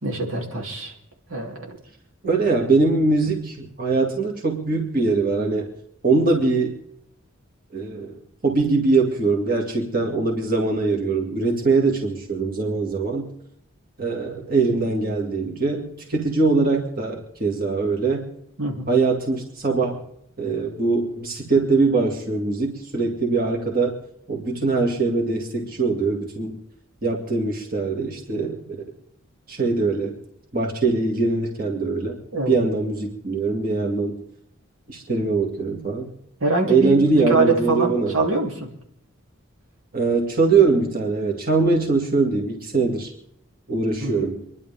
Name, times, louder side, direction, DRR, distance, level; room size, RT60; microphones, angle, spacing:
voice 1, 0.0-0.9 1.3-1.7 18.6-18.9 32.3-32.6 36.4-38.7 44.0-44.2, right 3 dB, 85° right, 0 dB, 3.3 m, -24 dB
voice 2, 2.2-5.7 6.0-6.7 7.7-8.2 8.4-13.3 14.0-18.3 18.9-20.0 20.4-24.0 24.3-26.5 27.0-28.9 29.5-30.2 30.5-32.2 32.5-34.2 34.9-36.1 36.7-38.2 39.9-43.1 43.7-44.4, right 3 dB, 45° right, 0 dB, 2.5 m, -22 dB
26.5 x 11.0 x 3.6 m, 0.73 s
head